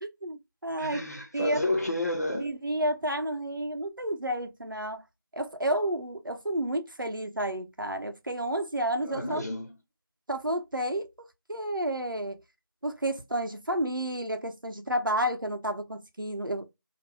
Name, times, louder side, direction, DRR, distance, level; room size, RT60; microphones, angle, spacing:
voice 1, 0.0-1.0 1.3-1.6 2.4-5.0 5.3-9.4 10.3-12.4 12.8-16.7, right 1 dB, 65° right, 0.7 m, -31 dB
voice 2, 0.8-2.5 9.1-9.7, left 1 dB, 45° left, 0.7 m, -30 dB
2.5 x 2.1 x 2.9 m
figure-of-eight pair, 175°, 12 cm